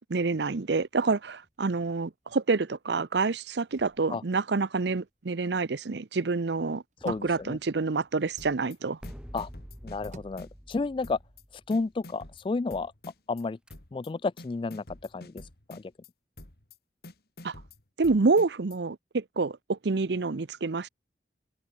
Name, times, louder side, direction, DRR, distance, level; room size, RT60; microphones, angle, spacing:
voice 1, 0.0-9.0 17.4-17.5 18.0-20.9, right 4 dB, 75° right, 0.7 m, -28 dB
sound 1, 0.8-2.2 2.6-9.0 9.5-10.7, right 1 dB, 45° right, 6.0 m, -57 dB
voice 2, 7.0-7.6 9.3-9.5 9.8-11.2 11.7-12.9 13.3-13.6 13.9-14.8 15.1-15.4 15.7-15.8, left 3 dB, 30° left, 0.3 m, -31 dB
sound 2, 7.0-8.3 9.0-12.3 13.4-13.7, equal, 5° right, 3.7 m, -48 dB
sound 3, 8.4-8.8 9.0-10.8 11.0-11.4 11.7-13.4 13.7-14.1 14.4-16.1 16.4-16.8 17.0-18.8, left 2 dB, 60° left, 3.3 m, -48 dB
open air
head